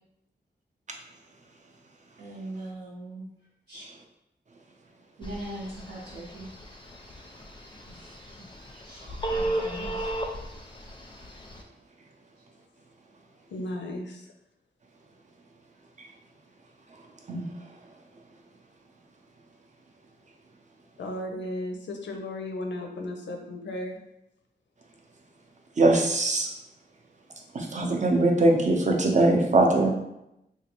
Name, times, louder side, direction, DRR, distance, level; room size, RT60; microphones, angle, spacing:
voice 1, 2.2-3.3 3.7-3.9 5.2-6.5 7.9-8.1 8.6-10.1 12.4-12.5, right 1 dB, 85° right, -8 dB, 0.8 m, -41 dB
Telephone, 5.2-11.6, right 1 dB, 25° left, 0.4 m, -35 dB
voice 2, 13.5-14.3 21.0-24.0, left 1 dB, 90° left, 3 dB, 0.5 m, -35 dB
voice 3, 16.9-17.7 25.8-26.5 27.5-29.9, right 2 dB, 40° right, 1 dB, 0.5 m, -22 dB
3.3 x 2.3 x 2.9 m, 0.88 s
wide cardioid pair, 105°, 18 cm